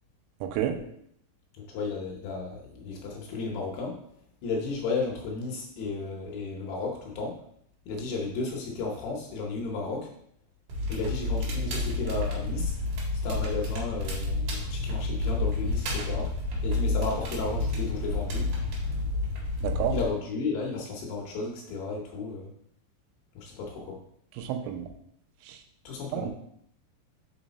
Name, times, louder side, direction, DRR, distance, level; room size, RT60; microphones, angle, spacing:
voice 1, 0.4-0.7 19.6-20.0 24.4-24.9 25.5-25.6 26.1-26.3, right 10 dB, 85° right, 6 dB, 3.2 m, -30 dB
voice 2, 1.7-4.0 4.4-7.4 7.9-10.1 10.9-12.7 13.2-16.3 16.6-18.5 19.9-22.5 23.4-24.0 25.9-26.3, left 3 dB, 75° left, -1 dB, 2.4 m, -33 dB
Crackle, 10.7-20.1, left 2 dB, 60° right, 2.7 m, -30 dB
6.2 x 4.9 x 4.0 m, 0.69 s
omnidirectional pair, 5.7 m